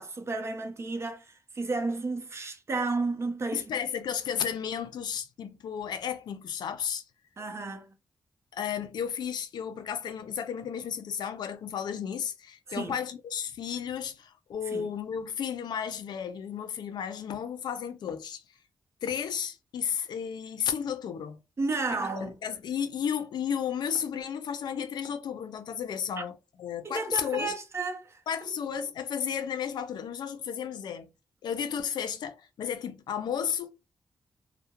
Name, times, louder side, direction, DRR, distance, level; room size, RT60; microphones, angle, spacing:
voice 1, 0.0-3.7 7.4-7.8 12.7-12.9 14.7-14.9 21.6-22.4 26.8-28.2, right 3 dB, 40° right, 0.6 m, -32 dB
voice 2, 3.5-7.0 8.5-18.4 19.0-21.4 22.2-27.5 28.3-31.1 31.4-33.7, left 8 dB, 90° left, 0.4 m, -33 dB
2.3 x 2.1 x 2.9 m
cardioid pair, 90°, 7 cm